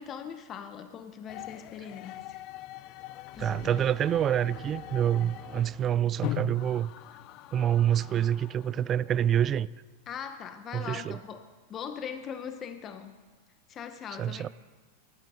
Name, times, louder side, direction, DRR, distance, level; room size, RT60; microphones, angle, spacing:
voice 1, 0.0-2.4 3.4-3.8 10.1-13.1 13.7-14.5, left 7 dB, 35° left, 0.8 m, -40 dB
sound 1, 1.3-9.6, left 16 dB, 50° left, 0.3 m, -42 dB
sound 2, 2.6-7.6, left 1 dB, 80° left, 4.5 m, -63 dB
sound 3, 3.3-6.8, equal, ahead, 2.5 m, -50 dB
voice 2, 3.4-6.9 7.5-9.7 10.7-11.2 14.2-14.5, right 10 dB, 30° right, 0.3 m, -27 dB
12.0 x 11.0 x 5.6 m
hypercardioid pair, 105°, 0 cm